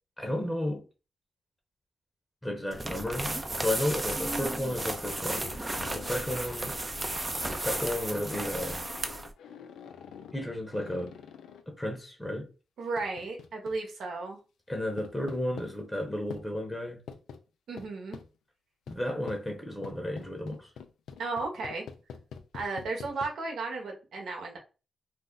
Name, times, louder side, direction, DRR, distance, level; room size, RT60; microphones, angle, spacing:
voice 1, 0.2-0.8 2.4-6.8 7.6-8.9 10.3-11.1 11.7-12.5 14.7-17.0 18.9-20.7, left 1 dB, 15° left, 0.9 m, -33 dB
sound 1, 2.7-9.3, right 2 dB, 30° right, 0.5 m, -34 dB
sound 2, 4.1-11.6 13.0-14.0 15.0-15.7 16.3-16.4 17.1-17.4 17.8-18.3 18.9-19.0 19.3-19.4 19.8-23.3, left 7 dB, 85° left, 0.3 m, -46 dB
voice 2, 12.8-14.4 17.7-18.2 21.2-21.8 22.5-24.6, right 3 dB, 80° right, 1.0 m, -34 dB
2.5 x 2.0 x 3.7 m
supercardioid pair, 45°, 0 cm